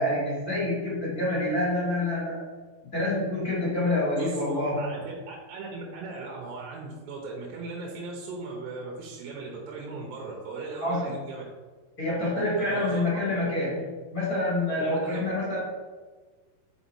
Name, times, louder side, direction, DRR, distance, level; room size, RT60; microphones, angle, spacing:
voice 1, 0.0-2.4 2.9-5.0 10.8-11.1 12.0-15.6, left 1 dB, 40° left, -7 dB, 1.3 m, -27 dB
voice 2, 4.8-11.4 12.6-13.1 14.8-15.2, right 3 dB, 85° right, -1 dB, 3.0 m, -38 dB
5.4 x 5.3 x 4.2 m, 1.4 s
omnidirectional pair, 4.8 m